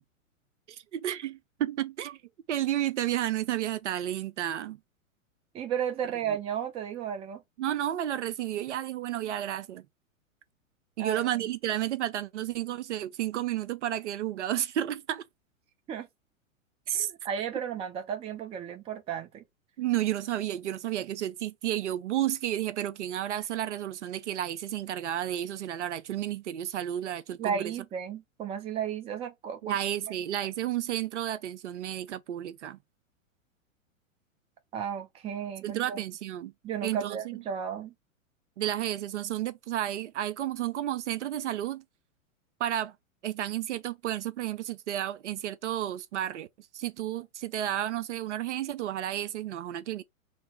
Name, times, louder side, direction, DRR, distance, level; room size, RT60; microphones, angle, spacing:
voice 1, 0.7-2.2 2.5-4.8 6.3-6.4 7.6-9.8 11.0-15.2 16.9-17.1 19.8-27.7 29.6-32.8 35.6-36.5 36.8-37.3 38.6-41.8 42.6-42.9 43.2-46.5 46.7-50.0, right 12 dB, 55° right, 0.5 m, -32 dB
voice 2, 5.5-7.4 11.0-11.5 15.9-16.1 16.9-19.4 27.4-29.8 34.7-36.0 36.6-37.9, right 8 dB, 15° right, 0.6 m, -34 dB
2.9 x 2.9 x 4.2 m
figure-of-eight pair, 105°, 41 cm